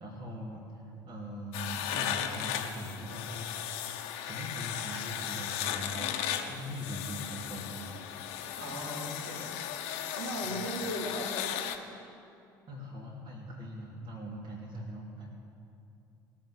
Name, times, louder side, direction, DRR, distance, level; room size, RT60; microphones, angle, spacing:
voice 1, 0.0-3.9 4.2-8.0 10.4-10.6 12.7-15.3, equal, 45° right, -4 dB, 3.0 m, -41 dB
sound 1, 1.5-11.8, left 10 dB, 65° left, 1.0 m, -36 dB
voice 2, 8.6-9.6 10.1-11.6, equal, 80° right, -6 dB, 4.2 m, -37 dB
19.5 x 6.6 x 8.0 m, 2.7 s
hypercardioid pair, 60°, 11 cm